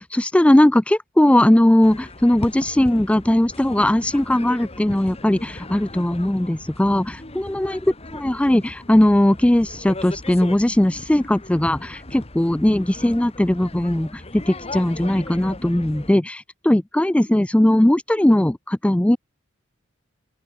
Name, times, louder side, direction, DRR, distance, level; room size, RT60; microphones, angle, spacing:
voice 1, 0.0-19.2, left 1 dB, 5° left, 0.3 m, -19 dB
sound 1, 1.8-16.1, left 2 dB, 30° left, 2.3 m, -38 dB
open air
head